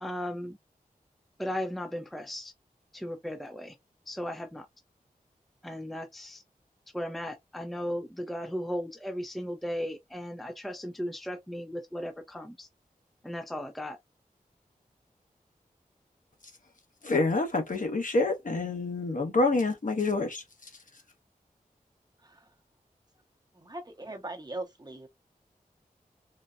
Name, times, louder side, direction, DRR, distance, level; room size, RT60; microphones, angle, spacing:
voice 1, 0.0-0.6 1.4-2.5 2.9-3.7 4.1-4.7 5.6-6.4 6.9-12.7 13.2-14.0, equal, ahead, 0.5 m, -36 dB
voice 2, 17.0-20.7, left 3 dB, 60° left, 1.0 m, -27 dB
voice 3, 23.5-25.1, right 2 dB, 25° right, 0.9 m, -40 dB
4.0 x 2.1 x 2.3 m
wide cardioid pair, 60°, 15 cm